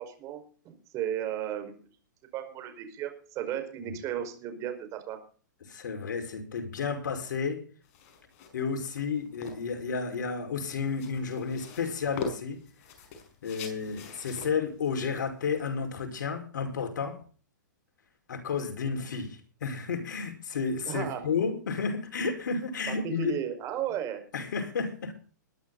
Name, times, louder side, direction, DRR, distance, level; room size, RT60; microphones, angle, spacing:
voice 1, 0.0-1.7 2.3-5.2 20.9-21.2 22.9-24.2, right 10 dB, 30° right, 5.2 m, -34 dB
voice 2, 5.6-7.7 8.5-12.6 13.4-17.2 18.3-23.3 24.3-25.2, left 5 dB, 75° left, 5.4 m, -32 dB
sound 1, 7.8-16.4, left 5 dB, 45° left, 5.6 m, -44 dB
21.0 x 11.5 x 4.1 m
hypercardioid pair, 130°, 10 cm